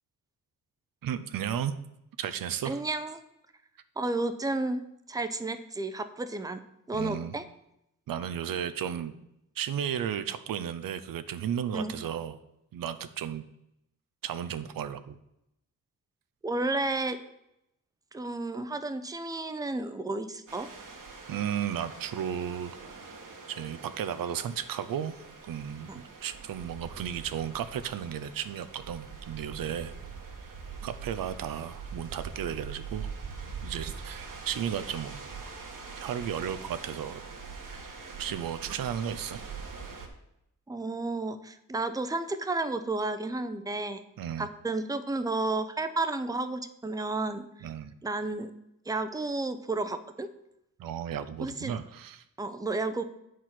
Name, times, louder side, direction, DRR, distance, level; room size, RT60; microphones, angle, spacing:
voice 1, 1.0-1.7 2.2-2.8 6.9-7.3 8.1-9.1 9.6-12.4 12.7-13.4 14.2-15.2 21.3-22.7 23.0-23.2 23.5-25.1 25.5-25.9 26.2-29.9 30.4-30.5 30.8-33.1 33.6-35.2 36.0-37.2 38.2-39.4 44.2-44.5 47.6-47.9 50.8-52.2, right 9 dB, 85° right, 11 dB, 0.6 m, -34 dB
voice 2, 2.6-3.2 4.0-4.8 5.1-6.6 6.9-7.4 11.7-12.0 16.4-17.2 18.1-20.7 25.9-26.0 40.7-44.0 44.4-47.5 48.0-48.5 48.9-50.3 51.4-51.8 52.4-53.0, right 2 dB, 10° right, 9 dB, 0.6 m, -32 dB
sound 1, 20.5-40.1, right 5 dB, 70° right, 1.5 m, -43 dB
8.1 x 4.7 x 5.9 m, 0.82 s
cardioid pair, 85°, 33 cm